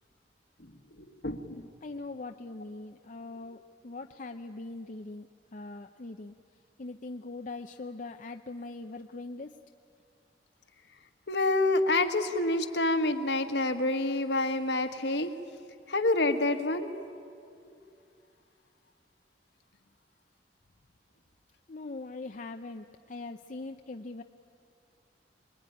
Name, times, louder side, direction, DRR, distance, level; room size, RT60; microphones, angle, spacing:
voice 1, 1.0-1.7 11.3-15.3 15.9-16.9 17.6-17.8, left 2 dB, 70° left, 6 dB, 1.6 m, -28 dB
voice 2, 1.8-6.3 6.8-9.5 21.7-24.2, left 3 dB, 45° left, 5 dB, 0.6 m, -41 dB
25.5 x 21.0 x 9.9 m, 2.4 s
head